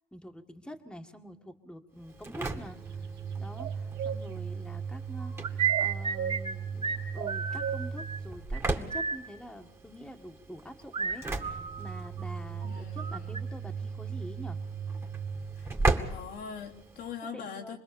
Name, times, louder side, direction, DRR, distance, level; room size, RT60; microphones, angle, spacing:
voice 1, 0.1-2.8 3.4-14.6 17.2-17.8, equal, 5° left, 4 dB, 1.9 m, -46 dB
Engine / Slam, 2.0-17.1, right 4 dB, 15° right, 2.2 m, -36 dB
sound 1, 3.6-4.2 5.7-6.4 7.2-7.8, right 8 dB, 80° right, 1.8 m, -34 dB
sound 2, 5.2-6.6 6.8-7.0 7.3-8.2 8.5-8.6 8.9-9.2 10.9-12.3 12.6-13.4, right 7 dB, 35° right, 3.1 m, -32 dB
voice 2, 12.6-13.4 15.6-15.7 16.1-17.8, left 6 dB, 85° left, -1 dB, 3.4 m, -42 dB
26.5 x 20.5 x 7.1 m, 0.68 s
cardioid pair, 110°, 17 cm